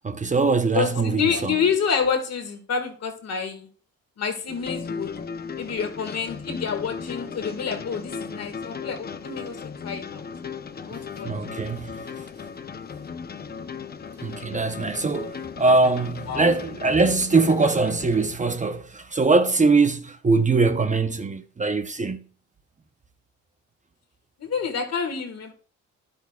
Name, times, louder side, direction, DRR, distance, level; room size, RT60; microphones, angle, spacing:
voice 1, 0.0-1.5 11.2-11.9 14.2-22.2, right 3 dB, 25° right, 0.8 m, -22 dB
voice 2, 0.7-3.7 4.2-5.1 5.6-10.2 10.8-11.3 16.3-16.5 24.4-25.5, left 6 dB, 55° left, 1.8 m, -28 dB
sound 1, 4.5-18.4, left 5 dB, 30° left, 0.7 m, -36 dB
11.0 x 8.4 x 2.3 m
cardioid pair, 90°, 30 cm